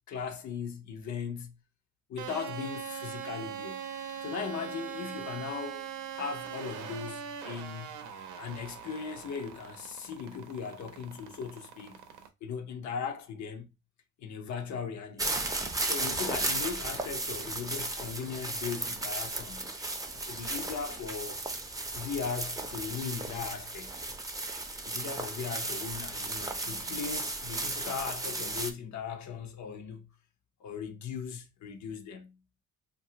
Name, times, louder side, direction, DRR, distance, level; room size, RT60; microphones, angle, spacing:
voice 1, 0.1-1.6 2.1-3.8 4.2-5.9 6.1-8.1 8.4-12.0 12.4-13.7 14.2-15.5 15.9-19.7 20.1-21.4 21.9-24.0 24.8-30.1 30.6-32.4, left 6 dB, 65° left, 0.7 m, -38 dB
sound 1, 2.2-12.3, right 8 dB, 80° right, 0.6 m, -42 dB
sound 2, 15.2-28.7, right 2 dB, 10° right, 0.5 m, -35 dB
2.7 x 2.3 x 2.7 m
cardioid pair, 90°, 30 cm